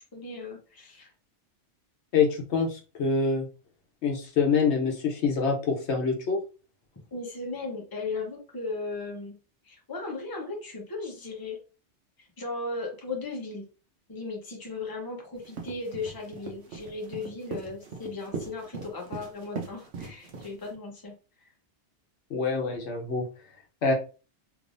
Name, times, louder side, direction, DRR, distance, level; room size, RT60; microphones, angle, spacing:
voice 1, 0.1-1.1 7.1-9.4 9.6-11.6 12.2-13.6 14.1-21.2 21.4-21.5, left 3 dB, 20° left, -1 dB, 0.9 m, -36 dB
voice 2, 2.1-3.5 4.0-6.4 22.3-23.3 23.8-23.9, left 5 dB, 70° left, 2 dB, 1.1 m, -25 dB
sound 1, 15.4-20.8, right 4 dB, 70° right, 1.0 m, -40 dB
3.4 x 3.0 x 2.5 m, 0.34 s
omnidirectional pair, 1.2 m